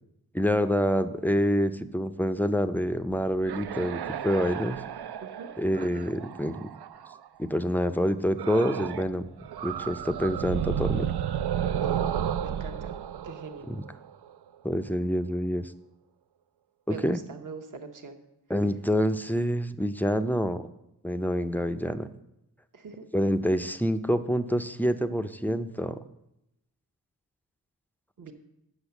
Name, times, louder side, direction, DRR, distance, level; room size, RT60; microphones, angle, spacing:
voice 1, 0.3-4.8 5.6-6.7 7.4-9.3 9.6-11.1 13.7-13.8 14.6-15.7 16.9-17.2 18.5-20.7 21.0-22.1 23.1-26.0, equal, 5° left, 9 dB, 0.4 m, -27 dB
sound 1, 3.1-7.3 8.4-9.1 9.4-14.3, right 9 dB, 80° right, 0.5 m, -32 dB
voice 2, 11.8-12.1 12.4-13.0 13.2-13.7 16.9-18.2 22.7-23.1 28.2-28.3, right 4 dB, 50° right, 5 dB, 1.0 m, -41 dB
8.1 x 6.5 x 7.0 m, 0.86 s
wide cardioid pair, 100°, 39 cm